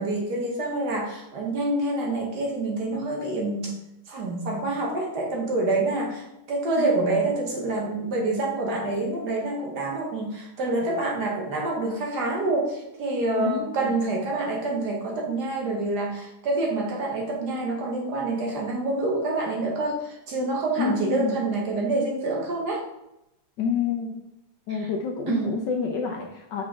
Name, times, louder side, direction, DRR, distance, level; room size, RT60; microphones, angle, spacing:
voice 1, 0.0-3.7 4.1-22.8 24.7-24.9 25.3-25.5, right 2 dB, 55° right, -1 dB, 1.5 m, -27 dB
voice 2, 13.4-13.9 20.8-21.4 23.6-24.1 24.7-26.6, left 6 dB, 70° left, 2 dB, 1.1 m, -28 dB
5.7 x 4.8 x 3.5 m, 0.86 s
omnidirectional pair, 2.3 m